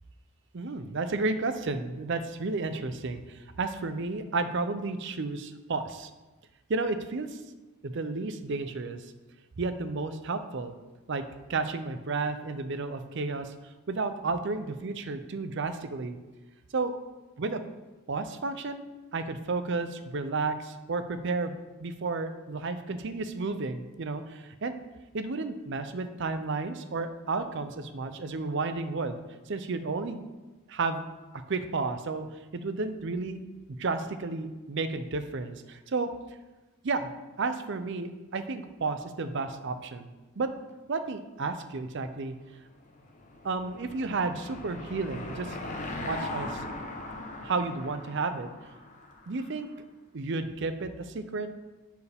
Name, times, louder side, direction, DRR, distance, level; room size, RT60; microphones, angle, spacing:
voice 1, 0.5-6.1 6.7-7.4 7.8-9.0 9.6-10.7 11.1-11.2 11.5-13.5 13.9-16.2 16.7-16.9 17.4-17.6 18.1-18.8 19.1-24.8 25.1-29.2 29.5-30.2 30.7-31.0 31.3-32.2 32.5-33.4 33.7-36.1 36.8-37.1 37.4-40.1 40.4-40.5 40.9-42.3 43.4-45.6 46.0-46.6 47.4-48.5 49.3-49.7 50.1-51.5, right 3 dB, 55° right, 10 dB, 0.5 m, -32 dB
Car passing by / Engine, 42.7-49.6, left 2 dB, 35° left, 0.9 m, -40 dB
10.5 x 4.7 x 3.5 m, 1.1 s
head